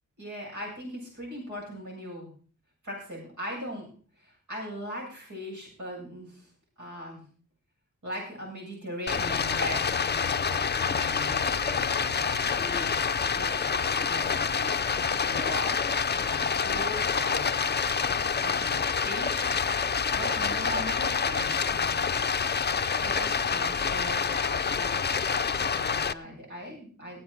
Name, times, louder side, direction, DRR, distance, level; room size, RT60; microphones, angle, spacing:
voice 1, 0.2-2.3 2.8-3.9 4.2-6.5 6.8-7.2 8.0-15.8 16.1-17.6 18.1-22.0 22.8-25.0 25.6-27.2, equal, 75° right, -3 dB, 7.8 m, -39 dB
Stream, 9.1-26.1, left 6 dB, 35° left, 0.5 m, -27 dB
16.0 x 9.7 x 4.9 m, 0.42 s
wide cardioid pair, 120°, 30 cm